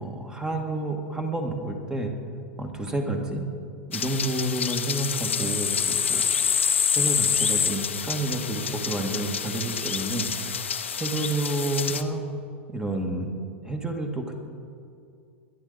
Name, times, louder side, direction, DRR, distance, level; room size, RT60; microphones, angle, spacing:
voice 1, 0.0-2.1 2.6-3.5 3.9-6.3 6.9-10.3 11.0-12.2 12.7-13.3 13.6-14.4, right 2 dB, 10° right, 4 dB, 1.9 m, -29 dB
sound 1, 3.9-12.0, left 7 dB, 80° left, 0.8 m, -27 dB
21.5 x 11.5 x 4.1 m, 2.4 s
figure-of-eight pair, 95°, 7 cm